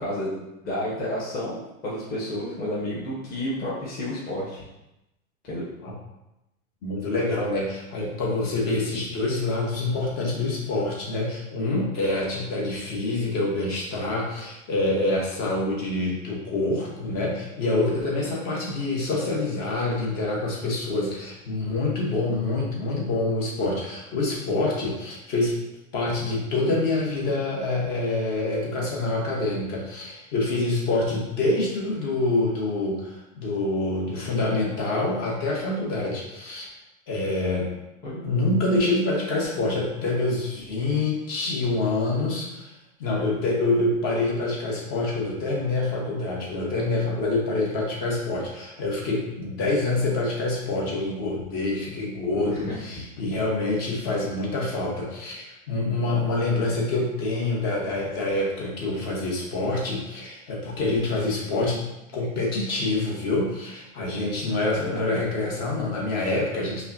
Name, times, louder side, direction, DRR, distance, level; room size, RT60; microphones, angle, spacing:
voice 1, 0.0-4.6 5.5-5.7 38.0-38.2 52.5-52.7 64.8-65.0, left 1 dB, 20° left, -7 dB, 1.0 m, -31 dB
voice 2, 6.8-25.6 25.9-36.6 37.1-37.7 38.2-42.7 43.0-61.8 62.1-66.9, left 2 dB, 45° left, -3 dB, 1.3 m, -26 dB
5.4 x 2.3 x 2.7 m, 0.91 s
hypercardioid pair, 125°, 42 cm